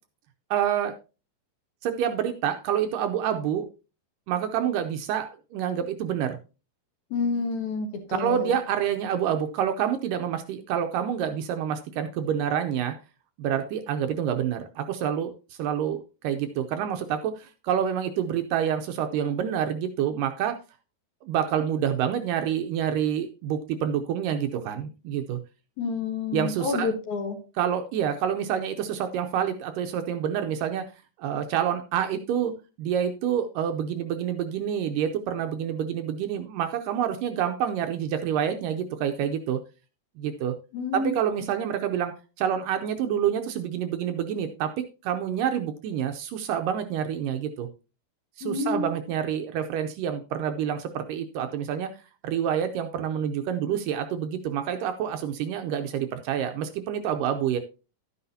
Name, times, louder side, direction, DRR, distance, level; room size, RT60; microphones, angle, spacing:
voice 1, 0.5-1.0 1.8-3.7 4.3-6.4 8.2-13.0 13.4-20.6 21.3-25.4 26.3-26.9 27.6-30.8 31.2-32.5 32.8-39.6 40.2-40.6 40.9-44.7 45.0-47.7 48.4-51.9 52.2-57.6, right 9 dB, 75° right, 7 dB, 2.1 m, -27 dB
voice 2, 7.1-8.6 25.8-27.4 40.7-41.1 48.4-48.9, left 4 dB, 60° left, 5 dB, 2.5 m, -29 dB
11.5 x 9.7 x 2.7 m, 0.32 s
omnidirectional pair, 4.2 m